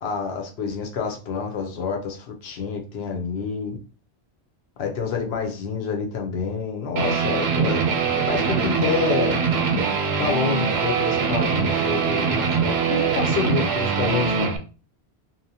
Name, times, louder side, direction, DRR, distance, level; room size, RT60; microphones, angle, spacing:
voice 1, 0.0-3.8 4.8-7.8 8.2-9.4 10.2-14.5, left 5 dB, 85° left, 2 dB, 0.9 m, -28 dB
Guitar, 7.0-14.6, right 6 dB, 85° right, 0.8 m, -22 dB
2.7 x 2.1 x 2.6 m, 0.36 s
omnidirectional pair, 1.0 m